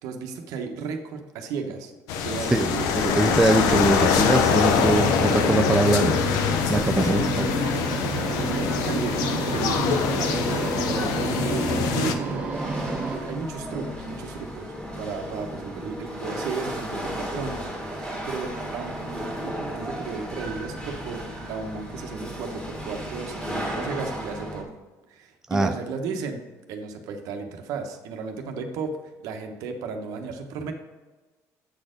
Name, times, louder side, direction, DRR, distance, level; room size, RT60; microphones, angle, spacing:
voice 1, 0.0-2.9 8.1-9.9 10.2-12.8 13.1-17.7 18.0-21.2 21.5-24.7 25.1-26.4 26.7-30.7, right 5 dB, 75° right, 5 dB, 1.0 m, -34 dB
sound 1, 2.1-12.1, left 6 dB, 90° left, 0.7 m, -24 dB
voice 2, 2.5-6.1 6.7-7.5 25.5-25.7, right 2 dB, 10° right, 5 dB, 0.4 m, -22 dB
sound 2, 4.6-13.2, right 4 dB, 25° right, 0.9 m, -31 dB
Chatter / Hiss / Rattle, 7.9-24.6, equal, 15° left, 1.8 m, -35 dB
8.4 x 4.3 x 5.0 m, 1.2 s
cardioid pair, 140°, 6 cm